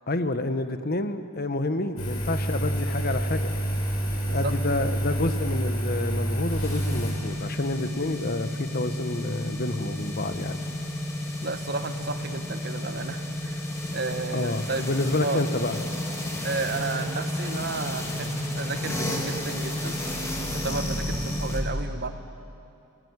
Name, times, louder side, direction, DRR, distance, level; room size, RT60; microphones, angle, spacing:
voice 1, 0.1-3.5 4.3-10.6 14.3-15.8, left 2 dB, 45° left, 10 dB, 1.2 m, -29 dB
Engine, 2.0-7.1, right 1 dB, 75° left, 6.7 m, -28 dB
sound 1, 6.6-21.6, left 1 dB, 15° left, 3.4 m, -31 dB
voice 2, 11.4-13.6 13.9-14.9 15.2-15.4 16.4-20.0 20.6-22.1, right 3 dB, 50° right, 8 dB, 1.5 m, -32 dB
30.0 x 19.5 x 9.7 m, 2.6 s
head